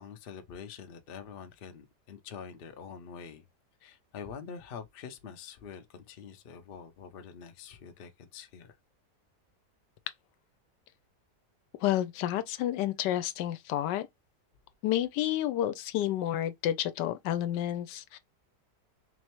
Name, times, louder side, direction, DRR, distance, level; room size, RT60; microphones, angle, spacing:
voice 1, 0.0-3.5 3.8-8.8, left 7 dB, 65° left, 0.5 m, -45 dB
voice 2, 11.8-14.1 14.8-18.2, left 12 dB, 85° left, 1.2 m, -30 dB
3.8 x 3.2 x 3.0 m
omnidirectional pair, 1.8 m